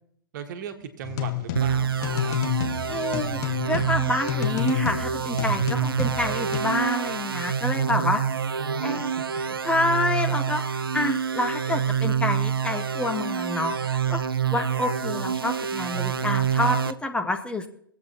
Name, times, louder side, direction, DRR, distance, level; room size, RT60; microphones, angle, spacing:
voice 1, 0.3-2.4 8.6-9.6, right 8 dB, 55° right, 7 dB, 1.5 m, -38 dB
sound 1, 1.0-6.6, left 12 dB, 50° left, 1.4 m, -30 dB
sound 2, 1.6-16.9, right 7 dB, 85° right, 0.4 m, -27 dB
voice 2, 2.9-8.6 8.8-9.1 9.6-14.2 14.5-17.7, left 2 dB, 10° left, 6 dB, 0.8 m, -28 dB
22.5 x 8.2 x 2.9 m, 0.68 s
figure-of-eight pair, 105°, 12 cm